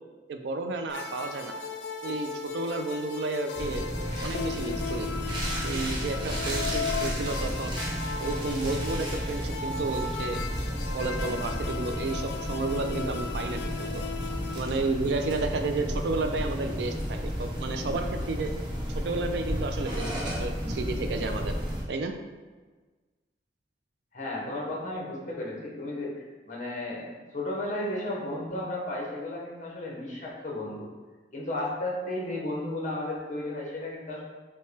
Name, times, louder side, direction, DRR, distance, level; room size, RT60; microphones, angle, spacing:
voice 1, 0.3-1.6 2.0-3.8 4.2-5.1 5.6-7.8 8.2-10.4 10.9-14.0 14.5-18.5 18.9-21.5 21.9-22.1, right 3 dB, 70° right, 6 dB, 0.4 m, -32 dB
sound 1, 0.9-14.6, left 5 dB, 80° left, 0.3 m, -36 dB
sound 2, 3.5-21.8, equal, 25° right, 0.8 m, -33 dB
voice 2, 24.1-30.9 31.3-34.2, left 1 dB, 45° left, -3 dB, 1.0 m, -34 dB
5.5 x 2.2 x 3.3 m, 1.3 s
head